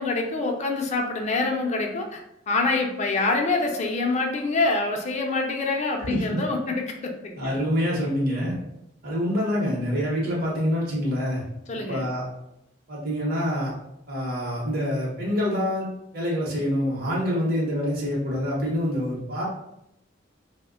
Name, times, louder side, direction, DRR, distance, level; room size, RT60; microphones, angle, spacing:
voice 1, 0.0-2.2 2.5-7.5 11.7-12.0, left 3 dB, 40° left, 2 dB, 0.5 m, -26 dB
voice 2, 6.1-6.4 7.4-8.6 9.0-11.4 11.9-12.2 12.9-13.7 14.1-15.9 16.1-19.4, equal, 55° right, -5 dB, 0.8 m, -26 dB
2.9 x 2.1 x 3.6 m, 0.81 s
head